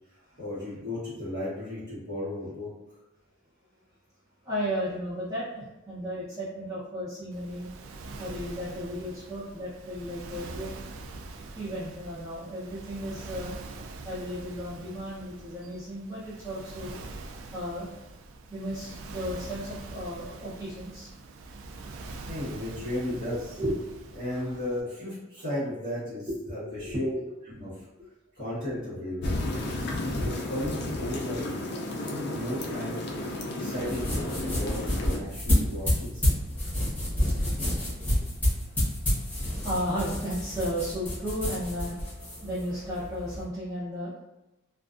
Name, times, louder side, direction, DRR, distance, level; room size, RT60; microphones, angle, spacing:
voice 1, 0.4-2.7 22.3-23.6 24.1-27.1 27.5-27.7 28.3-29.4 30.2-36.4, left 1 dB, 55° right, -14 dB, 1.2 m, -35 dB
voice 2, 4.4-7.7 8.2-10.8 11.5-13.6 14.0-17.0 17.5-17.9 18.5-21.1 23.6-23.8 24.3-24.5 26.3-26.4 26.6-27.3 36.6-36.9 39.5-41.9 42.4-44.2, equal, 15° right, -13 dB, 0.7 m, -34 dB
Waves surf, 7.3-24.8, right 3 dB, 80° right, 0.3 m, -43 dB
sound 1, 29.2-35.2, left 2 dB, 55° left, 0.4 m, -33 dB
sound 2, 33.8-43.4, left 1 dB, 10° left, 0.9 m, -29 dB
2.4 x 2.3 x 2.4 m, 0.96 s
head